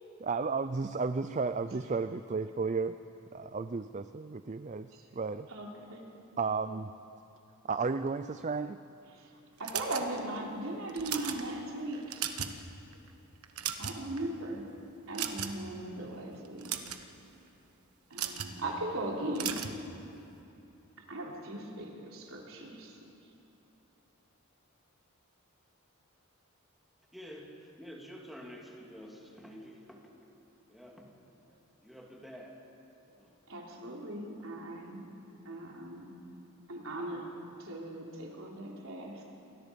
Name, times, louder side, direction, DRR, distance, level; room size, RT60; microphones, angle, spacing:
voice 1, 0.2-3.0 3.3-5.5 6.4-6.9 7.6-8.8, right 4 dB, 35° right, 11 dB, 0.4 m, -33 dB
voice 2, 5.5-6.0 9.2-9.3 9.6-12.2 13.8-14.7 15.1-16.7 18.1-19.6 21.1-23.0 33.5-35.1 35.5-36.1 36.7-37.2 37.6-39.2, right 1 dB, 70° right, -1 dB, 3.5 m, -38 dB
sound 1, 9.6-10.4 10.9-11.4 11.9-12.6 12.9-13.1 13.4-14.2 15.1-15.7 16.4-17.0 18.1-18.5 19.3-19.8, right 10 dB, 90° right, 1.3 m, -36 dB
voice 3, 27.1-30.2 30.7-31.1 31.8-32.6 33.1-33.3, equal, ahead, -2 dB, 2.4 m, -49 dB
28.0 x 21.0 x 5.3 m, 2.8 s
head